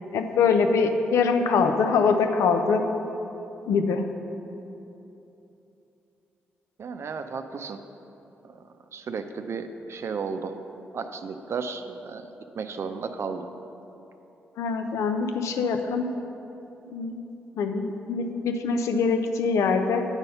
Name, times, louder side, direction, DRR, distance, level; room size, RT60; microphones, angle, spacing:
voice 1, 0.1-2.8 3.7-4.0 14.6-16.1 16.9-17.2 17.6-20.1, left 5 dB, 75° left, 6 dB, 0.5 m, -23 dB
voice 2, 6.8-7.8 8.9-10.5 10.9-12.2 12.5-13.5, right 5 dB, 55° right, 8 dB, 0.5 m, -33 dB
8.9 x 4.1 x 5.5 m, 3.0 s
hypercardioid pair, 40°, 5 cm